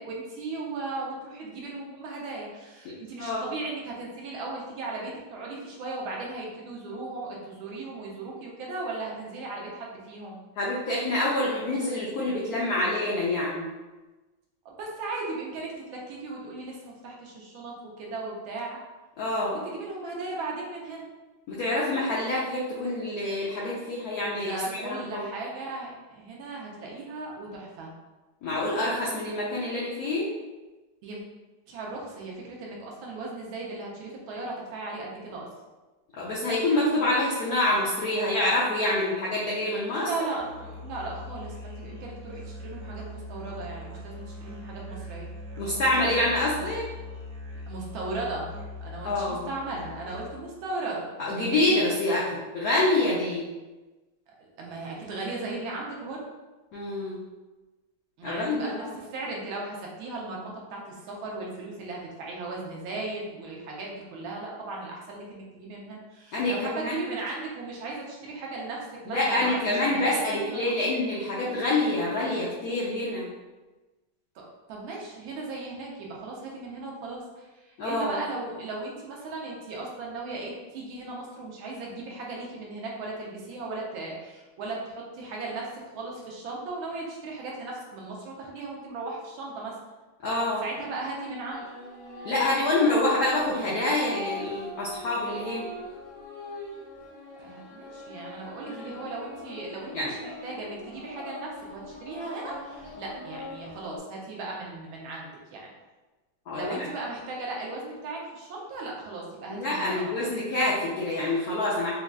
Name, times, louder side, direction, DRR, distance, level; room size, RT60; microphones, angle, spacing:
voice 1, 0.0-10.4 14.6-18.8 19.5-21.1 24.4-27.9 31.0-31.2 31.7-35.5 40.0-45.3 47.7-51.1 54.3-56.2 58.2-70.7 74.7-89.8 90.6-91.7 97.4-105.7 106.5-110.2, right 3 dB, 85° right, -2 dB, 1.5 m, -37 dB
voice 2, 10.6-13.7 19.2-19.6 21.5-25.3 28.4-30.3 36.2-40.1 45.6-46.8 49.0-49.5 51.2-53.5 56.7-57.2 58.2-58.9 66.3-66.5 66.8-67.0 69.1-73.3 77.8-78.1 90.2-90.6 92.2-95.7 98.8-98.9 99.9-100.1 106.5-106.9 109.5-111.9, left 2 dB, 75° left, -6 dB, 0.8 m, -26 dB
Musical instrument, 40.4-50.5, left 1 dB, 65° right, 1.0 m, -41 dB
sound 1, 91.5-104.0, left 1 dB, 90° left, 1.9 m, -41 dB
5.2 x 2.3 x 2.3 m, 1.2 s
omnidirectional pair, 2.2 m